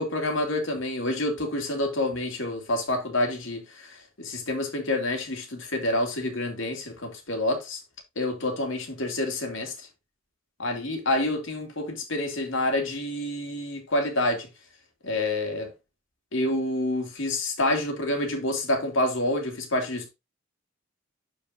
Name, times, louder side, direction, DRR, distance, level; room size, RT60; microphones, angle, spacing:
voice 1, 0.0-7.8 8.2-9.9 10.6-14.5 15.0-15.7 16.3-20.1, left 1 dB, 65° left, 2.4 m, -28 dB
12.0 x 4.7 x 2.5 m
head